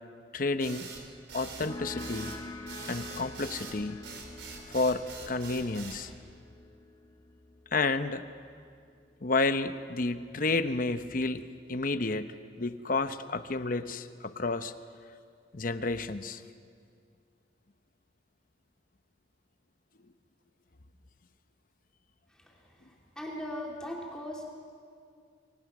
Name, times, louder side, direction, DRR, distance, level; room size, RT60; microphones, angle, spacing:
voice 1, 0.3-0.9 1.3-2.3 2.9-4.1 4.7-6.1 7.7-8.2 9.2-14.7 15.5-16.4, left 3 dB, 50° left, 10 dB, 0.8 m, -31 dB
sound 1, 0.6-6.0, right 4 dB, 75° right, 3.9 m, -44 dB
sound 2, 1.6-8.9, left 2 dB, 20° left, 1.3 m, -45 dB
voice 2, 23.2-24.5, left 1 dB, 5° left, -2 dB, 3.0 m, -38 dB
28.0 x 24.0 x 6.1 m, 2.2 s
head